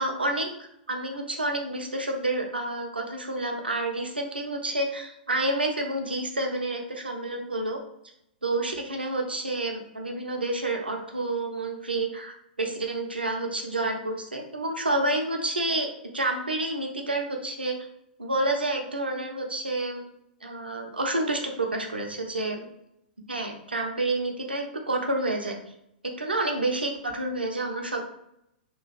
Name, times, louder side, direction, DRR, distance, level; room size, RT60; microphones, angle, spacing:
voice 1, 0.0-7.8 8.4-15.9 16.1-17.7 18.2-20.0 20.4-22.7 23.3-25.6 26.2-28.1, right 2 dB, 80° right, 2 dB, 0.6 m, -29 dB
2.9 x 2.3 x 3.1 m, 0.77 s
figure-of-eight pair, 105°, 5 cm